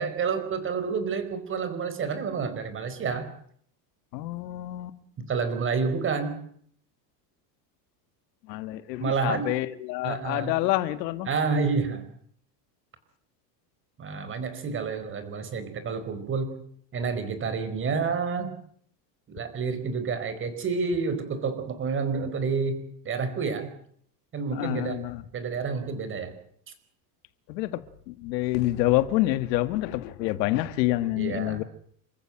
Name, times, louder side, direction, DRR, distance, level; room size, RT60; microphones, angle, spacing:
voice 1, 0.0-3.3 5.2-6.4 9.0-9.6 10.0-10.5 11.3-12.0 14.0-16.6 16.9-18.5 19.3-23.7 24.3-25.0 25.3-26.3 31.1-31.6, right 5 dB, 25° right, 4.7 m, -29 dB
voice 2, 4.1-5.0 8.5-11.3 24.5-25.2 27.5-31.6, left 16 dB, 85° left, 2.0 m, -27 dB
28.5 x 15.0 x 9.1 m
cardioid pair, 165°, 49 cm